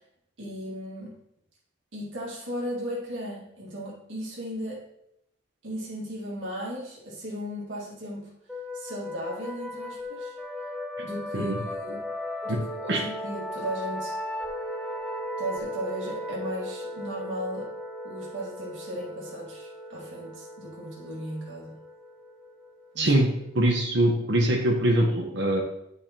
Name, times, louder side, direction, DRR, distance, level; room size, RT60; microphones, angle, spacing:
voice 1, 0.4-1.2 1.9-4.8 5.6-8.3 8.7-10.4 11.0-12.1 12.4-14.2 15.4-17.7 18.0-21.8 22.9-23.1, equal, 90° right, -4 dB, 1.8 m, -36 dB
sound 1, 8.5-23.8, left 1 dB, ahead, 0.7 m, -37 dB
voice 2, 23.0-23.3 23.5-25.6, right 1 dB, 65° right, 0 dB, 1.1 m, -23 dB
9.6 x 4.9 x 2.9 m, 0.79 s
head